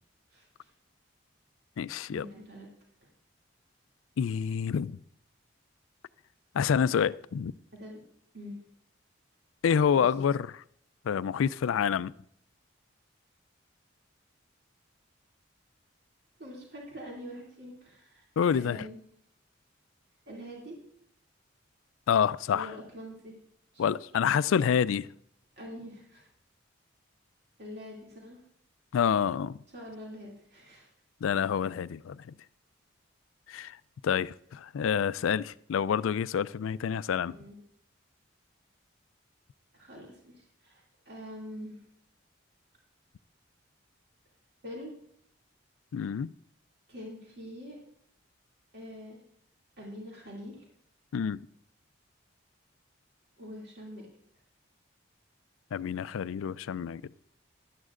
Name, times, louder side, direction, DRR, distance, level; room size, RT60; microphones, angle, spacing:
voice 1, 0.3-0.7 2.1-2.7 7.7-8.0 8.3-8.6 9.9-10.0 16.4-18.2 18.5-19.0 20.3-20.8 22.5-23.4 23.7-23.8 25.6-26.3 27.6-28.4 29.7-30.9 37.2-37.6 39.7-41.8 44.6-44.9 46.9-47.8 48.7-49.2 49.8-50.6 53.4-54.1, equal, 55° right, 2.5 m, -44 dB
voice 2, 1.8-2.3 4.2-5.0 6.5-7.5 9.6-10.6 11.0-12.1 18.4-18.9 22.1-22.7 23.8-25.1 28.9-29.6 31.2-32.3 33.5-33.8 34.0-37.4 45.9-46.3 51.1-51.4 55.7-57.2, left 7 dB, 85° left, 0.3 m, -28 dB
15.5 x 12.0 x 2.5 m
head